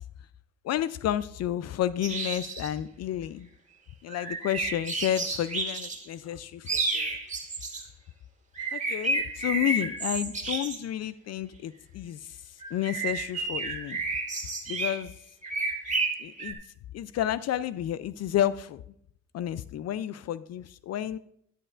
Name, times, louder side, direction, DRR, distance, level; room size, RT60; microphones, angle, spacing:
voice 1, 0.6-3.5 4.0-7.2 8.7-14.0 14.7-15.2 16.2-16.6 16.9-18.8 19.3-21.2, left 11 dB, 60° left, 16 dB, 0.4 m, -31 dB
sound 1, 2.0-2.7 4.1-6.1 6.7-7.8 8.6-10.8 12.6-15.0 15.4-16.5, right 3 dB, 25° right, 1.9 m, -31 dB
11.0 x 10.0 x 2.5 m, 0.68 s
cardioid pair, 90°, 30 cm